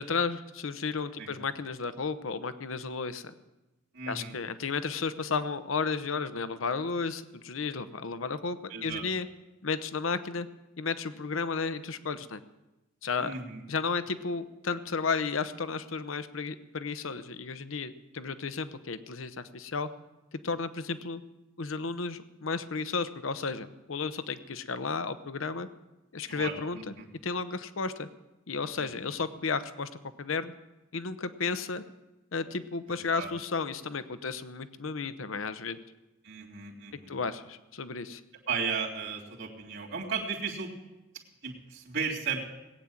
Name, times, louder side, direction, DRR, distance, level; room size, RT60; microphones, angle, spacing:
voice 1, 0.0-3.3 4.1-9.3 9.6-10.5 10.8-12.4 13.0-13.4 13.7-19.9 20.3-21.2 21.6-25.7 26.1-26.9 27.2-28.1 28.5-29.9 30.2-30.5 30.9-31.8 32.3-35.8 37.1-38.2, left 4 dB, 75° left, 12 dB, 0.8 m, -33 dB
voice 2, 3.9-4.3 8.7-9.0 13.2-13.6 26.3-27.1 28.8-29.1 33.2-33.3 36.2-37.2 38.5-40.7 41.4-42.4, right 5 dB, 65° right, -1 dB, 3.0 m, -35 dB
19.0 x 9.0 x 7.3 m, 1.0 s
head